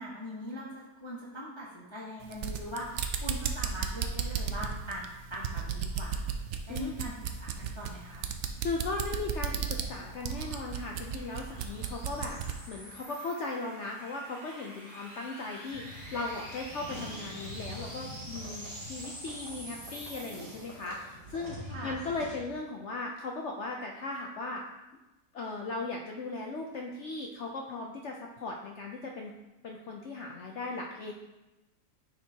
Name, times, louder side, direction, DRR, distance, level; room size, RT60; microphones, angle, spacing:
voice 1, 0.0-5.0 5.3-6.3 6.7-7.1 7.4-8.3 21.7-22.0, equal, 25° left, -4 dB, 0.7 m, -41 dB
sound 1, 2.2-12.6, right 7 dB, 75° right, 0.6 m, -34 dB
voice 2, 8.6-12.4 12.7-24.6 25.3-29.3 29.6-31.1, left 3 dB, 70° left, 0 dB, 0.7 m, -37 dB
sound 2, 9.1-21.2, equal, 50° right, 1.8 m, -48 dB
sound 3, 15.7-22.4, equal, 30° right, 1.8 m, -45 dB
9.4 x 4.5 x 2.8 m, 1.0 s
omnidirectional pair, 1.8 m